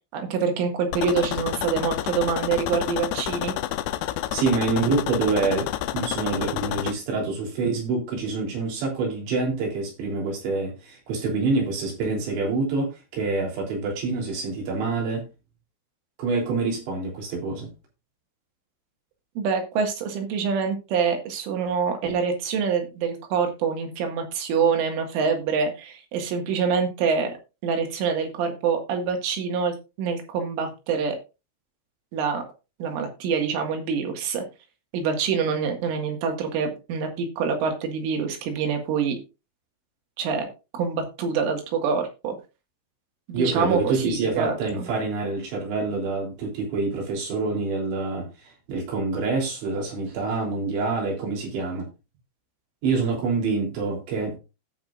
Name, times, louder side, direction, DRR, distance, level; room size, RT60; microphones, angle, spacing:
voice 1, 0.1-3.5 19.4-27.3 27.6-31.2 32.1-32.4 32.8-34.4 34.9-39.2 40.2-40.5 40.7-42.4 43.3-44.6, right 6 dB, 85° right, 3 dB, 4.4 m, -26 dB
sound 1, 0.9-6.9, left 13 dB, 85° left, 3.0 m, -29 dB
voice 2, 4.3-12.9 13.1-15.2 16.2-17.7 43.3-48.3 48.7-51.9 52.8-54.4, right 3 dB, 70° right, -1 dB, 5.6 m, -26 dB
17.0 x 5.9 x 2.5 m, 0.28 s
omnidirectional pair, 5.5 m